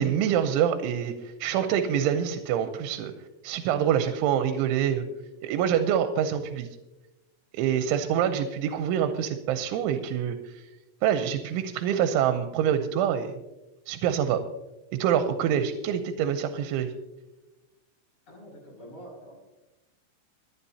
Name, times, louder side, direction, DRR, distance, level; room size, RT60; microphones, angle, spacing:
voice 1, 0.0-3.1 3.4-5.1 5.4-6.7 7.5-10.6 11.0-13.3 13.9-14.5 14.9-16.9, right 9 dB, 85° right, 7 dB, 3.2 m, -26 dB
voice 2, 18.3-19.3, equal, 15° left, -3 dB, 6.1 m, -45 dB
26.5 x 10.5 x 2.8 m, 1.0 s
omnidirectional pair, 5.4 m